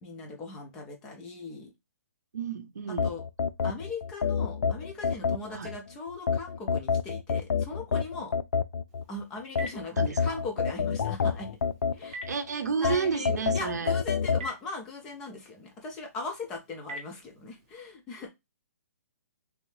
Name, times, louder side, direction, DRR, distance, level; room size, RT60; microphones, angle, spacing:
voice 1, 0.0-1.7 2.9-3.2 3.6-8.3 9.1-11.5 11.9-12.2 12.8-18.3, left 3 dB, 10° left, 0.3 m, -39 dB
voice 2, 2.3-3.1 5.5-5.7 9.9-10.4 12.3-14.0, right 6 dB, 80° right, 0.6 m, -31 dB
sound 1, 3.0-5.8 6.3-9.0 9.6-12.3 12.8-14.5, left 5 dB, 85° left, 0.4 m, -28 dB
Telephone, 8.9-17.7, right 1 dB, 25° right, 0.7 m, -48 dB
3.2 x 2.6 x 3.1 m
hypercardioid pair, 175°, 9 cm